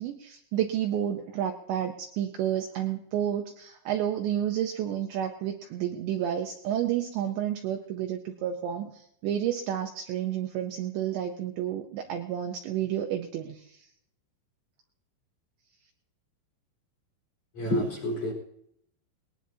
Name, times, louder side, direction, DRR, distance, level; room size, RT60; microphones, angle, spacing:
voice 1, 0.0-13.9, right 10 dB, 80° right, 4 dB, 2.7 m, -30 dB
voice 2, 17.5-18.3, equal, 40° left, -2 dB, 5.2 m, -28 dB
20.5 x 19.5 x 2.8 m, 0.72 s
omnidirectional pair, 5.9 m